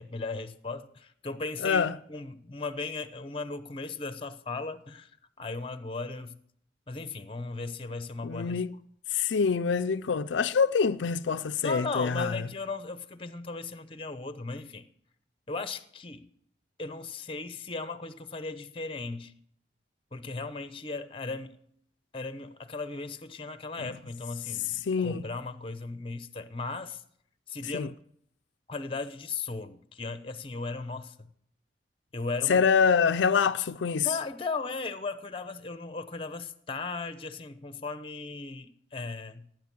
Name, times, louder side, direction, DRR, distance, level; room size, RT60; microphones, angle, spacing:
voice 1, 0.0-5.1 5.4-6.4 6.9-8.6 11.6-14.8 15.5-16.3 16.8-19.3 20.1-21.6 22.1-27.0 27.5-28.0 28.7-31.3 32.1-32.6 34.0-39.5, left 3 dB, 30° left, 0.8 m, -37 dB
voice 2, 1.6-2.0 8.2-8.7 9.1-12.4 24.9-25.2 27.7-27.9 32.5-34.1, left 6 dB, 80° left, 0.5 m, -25 dB
17.5 x 9.2 x 6.1 m
head